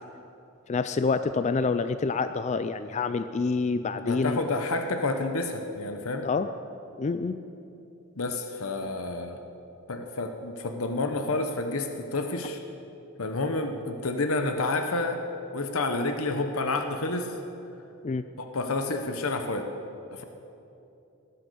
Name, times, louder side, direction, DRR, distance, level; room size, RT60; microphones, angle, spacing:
voice 1, 0.7-4.4 6.2-6.5 7.0-7.4 18.0-18.2, left 4 dB, 30° left, 11 dB, 0.3 m, -27 dB
voice 2, 4.0-6.3 8.2-9.4 9.9-12.6 13.2-15.2 15.5-17.3 18.4-19.7 20.1-20.2, left 2 dB, 70° left, 6 dB, 1.0 m, -29 dB
19.0 x 10.0 x 6.9 m, 2.9 s
head